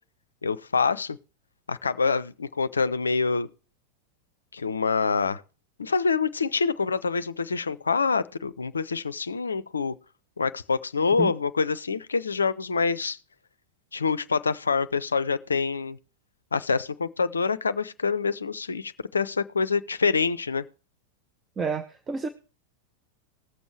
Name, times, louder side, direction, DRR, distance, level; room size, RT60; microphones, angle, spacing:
voice 1, 0.4-1.2 1.7-3.5 4.5-5.4 5.8-9.9 10.4-13.2 13.9-16.0 16.5-20.6, left 5 dB, 75° left, 0.4 m, -26 dB
voice 2, 21.6-22.3, right 5 dB, 20° right, 0.7 m, -29 dB
20.0 x 7.0 x 3.2 m
figure-of-eight pair, 90°, 0 cm